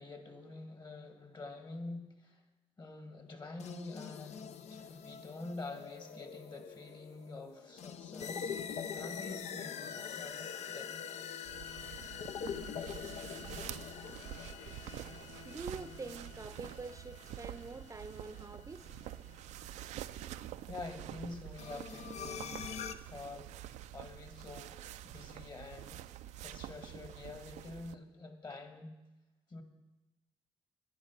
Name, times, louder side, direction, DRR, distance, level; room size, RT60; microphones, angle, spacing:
voice 1, 0.0-2.4 2.8-11.0 20.7-22.8 23.1-24.8 25.1-26.0 26.4-28.9 29.5-29.6, left 3 dB, 40° left, 6 dB, 2.1 m, -47 dB
sound 1, 3.6-19.7 21.6-22.9, left 7 dB, 70° left, 0.7 m, -44 dB
sound 2, 11.5-28.0, right 12 dB, 85° right, 0.4 m, -47 dB
voice 2, 15.4-18.9, right 3 dB, 25° right, 11 dB, 0.6 m, -45 dB
11.0 x 9.9 x 6.0 m, 1.0 s
supercardioid pair, 65°, 12 cm